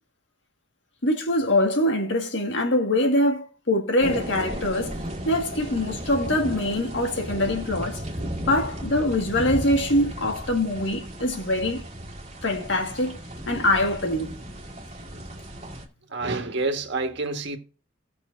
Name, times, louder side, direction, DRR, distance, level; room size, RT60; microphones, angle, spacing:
voice 1, 1.0-5.0 5.2-8.0 8.5-11.8 12.4-13.2 13.5-14.4, left 1 dB, 65° left, 1.8 m, -24 dB
sound 1, 4.0-15.8, right 1 dB, 35° right, 2.0 m, -35 dB
voice 2, 16.1-17.6, right 3 dB, 65° right, 1.7 m, -28 dB
17.0 x 6.1 x 2.6 m
head